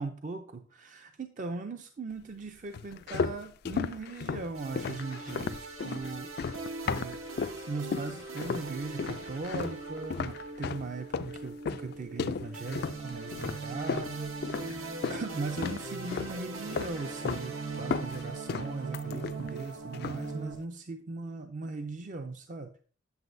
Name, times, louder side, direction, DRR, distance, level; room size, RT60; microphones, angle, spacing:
voice 1, 0.0-6.3 6.8-7.2 7.7-22.7, right 3 dB, 40° right, 7 dB, 0.4 m, -39 dB
sound 1, 2.7-7.6 7.9-8.7 9.0-15.3 15.6-16.4 16.7-17.5 17.7-19.6 19.9-20.3, left 5 dB, 50° left, 0.3 m, -35 dB
sound 2, 4.5-20.6, right 3 dB, 90° right, 1.2 m, -40 dB
8.0 x 7.6 x 2.6 m, 0.41 s
head